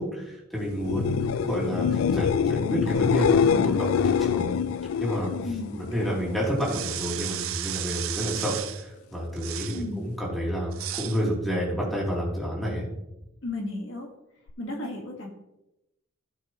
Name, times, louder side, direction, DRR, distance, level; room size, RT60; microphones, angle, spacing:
voice 1, 0.0-4.4 5.0-12.8, equal, ahead, -5 dB, 3.2 m, -29 dB
sound 1, 0.7-6.5 6.9-7.4 14.5-14.6, left 7 dB, 90° left, 0.3 m, -25 dB
sound 2, 6.6-8.9 9.4-9.9 10.7-11.2, right 13 dB, 80° right, 0.5 m, -34 dB
voice 2, 9.7-10.0 13.4-14.1 14.6-15.3, left 2 dB, 65° left, 1 dB, 1.8 m, -34 dB
16.0 x 6.1 x 3.1 m, 0.90 s
head